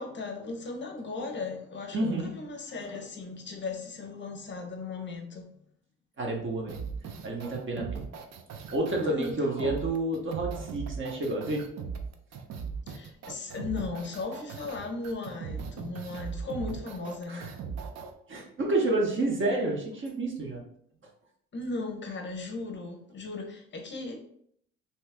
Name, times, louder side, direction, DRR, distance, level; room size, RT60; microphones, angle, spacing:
voice 1, 0.0-5.5 9.0-9.9 12.9-17.5 21.5-24.2, left 3 dB, 40° left, 0.6 m, -37 dB
voice 2, 1.9-2.3 6.2-6.8 7.2-7.9 8.7-11.6 17.3-17.5 18.3-20.6, right 2 dB, 40° right, 0.9 m, -29 dB
sound 1, 6.7-18.1, right 6 dB, 60° right, 0.5 m, -38 dB
2.8 x 2.3 x 3.3 m
cardioid pair, 90°, 30 cm